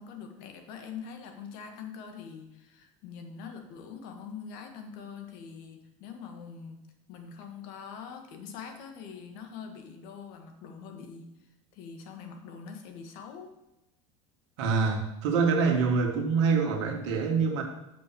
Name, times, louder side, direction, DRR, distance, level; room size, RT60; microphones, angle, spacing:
voice 1, 0.0-6.8 7.1-11.3 11.7-13.5, left 6 dB, 65° left, 5 dB, 1.6 m, -44 dB
voice 2, 14.6-17.6, right 5 dB, 70° right, 3 dB, 1.8 m, -25 dB
7.2 x 5.9 x 7.2 m, 0.89 s
hypercardioid pair, 85°, 16 cm